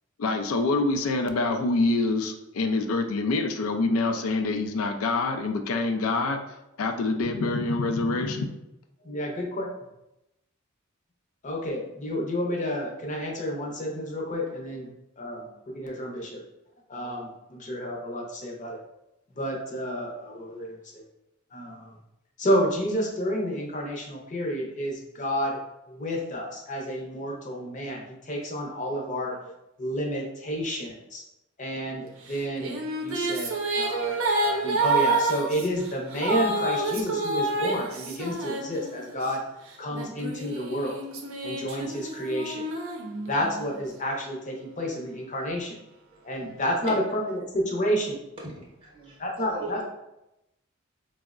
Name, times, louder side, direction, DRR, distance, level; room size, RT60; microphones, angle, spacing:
voice 1, 0.2-6.4 6.8-8.5, left 3 dB, 85° left, 5 dB, 0.4 m, -26 dB
voice 2, 9.0-9.7 11.4-14.9 15.2-16.4 16.9-18.8 19.3-21.0 21.5-21.9 22.4-25.6 25.9-29.5 29.8-31.2 31.6-39.4 39.8-41.0 41.4-42.6 43.3-45.8 46.2-48.2 49.2-49.8, equal, 35° left, -1 dB, 0.6 m, -30 dB
Female singing, 32.3-39.2 39.9-43.7, right 2 dB, 80° right, 0.5 m, -29 dB
voice 3, 48.1-49.2 49.5-49.8, right 1 dB, 25° right, -4 dB, 0.7 m, -39 dB
4.4 x 2.0 x 2.4 m, 0.89 s
head